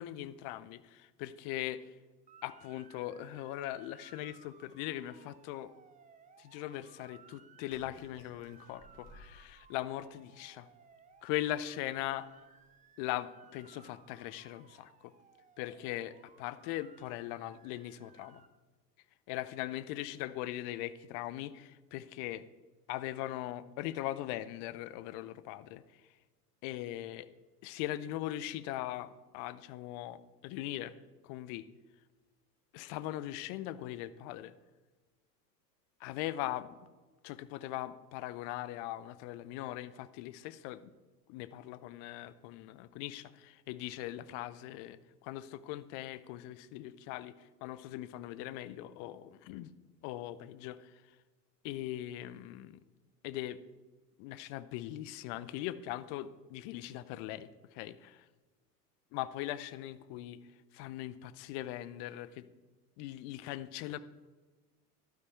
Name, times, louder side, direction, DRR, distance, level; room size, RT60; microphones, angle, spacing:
voice 1, 0.0-1.9 2.4-5.7 6.4-10.7 11.2-12.3 13.0-15.1 15.6-18.4 19.3-22.4 22.9-25.8 26.6-27.3 27.6-30.9 31.2-31.6 32.7-34.5 36.0-36.7 37.2-40.9 41.3-47.3 47.6-49.7 50.0-50.9 51.6-52.8 53.2-53.6 54.2-58.2 59.1-60.4 60.7-62.5 63.0-64.0, left 14 dB, 40° left, 16 dB, 0.6 m, -40 dB
Motor vehicle (road) / Siren, 2.3-18.5, right 6 dB, 15° right, 0.8 m, -61 dB
sound 1, 7.7-10.2 10.8-10.9 11.2-11.3 11.9-12.2 12.6-12.8, left 1 dB, 60° left, 3.3 m, -59 dB
12.0 x 8.9 x 4.5 m, 1.3 s
figure-of-eight pair, 85°, 48 cm